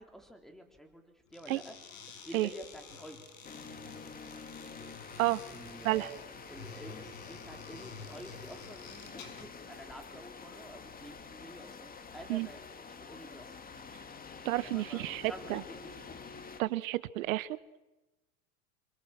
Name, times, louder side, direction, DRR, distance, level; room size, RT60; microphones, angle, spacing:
voice 1, 0.0-1.7 2.2-3.2 5.5-6.2 6.5-12.6 13.0-13.5 14.6-15.9, equal, ahead, 5 dB, 3.9 m, -49 dB
sound 1, 1.3-9.5, left 5 dB, 65° left, 7.0 m, -50 dB
sound 2, 3.4-16.6, left 5 dB, 20° left, 2.3 m, -48 dB
voice 2, 14.4-15.6 16.6-17.6, right 17 dB, 70° right, 16 dB, 1.4 m, -31 dB
27.5 x 22.0 x 7.6 m, 1.0 s
hypercardioid pair, 100°, 43 cm